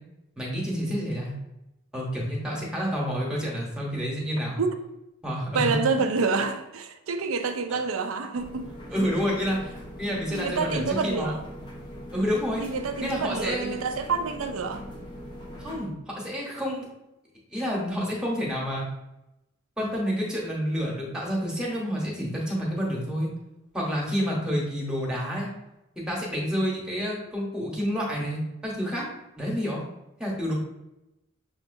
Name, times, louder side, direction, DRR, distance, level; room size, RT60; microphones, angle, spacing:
voice 1, 0.4-1.3 1.9-4.6 5.2-6.0 7.7-7.8 8.9-11.3 12.1-12.6 13.0-13.9 15.6-16.9 17.5-18.8 19.8-23.3 23.7-25.5 26.0-29.1 29.4-29.8 30.2-30.5, equal, 5° right, 1.1 m, -29 dB
voice 2, 5.5-8.7 10.3-11.4 12.6-14.8, right 4 dB, 85° right, 0.5 m, -27 dB
sound 1, 8.3-15.9, equal, 25° left, 0.7 m, -41 dB
6.4 x 2.7 x 2.6 m
head